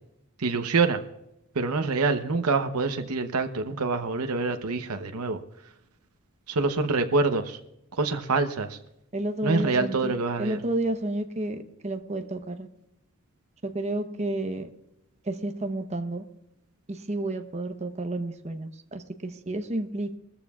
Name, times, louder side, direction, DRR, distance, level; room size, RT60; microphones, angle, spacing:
voice 1, 0.4-1.0 1.5-5.4 6.5-7.6 8.0-8.8 9.4-10.6, right 3 dB, 85° right, 7 dB, 0.9 m, -26 dB
voice 2, 9.1-10.1 10.4-12.7 13.6-14.7 15.2-16.2 16.9-20.2, right 1 dB, 30° right, 7 dB, 0.9 m, -31 dB
20.5 x 14.0 x 2.4 m, 0.84 s
head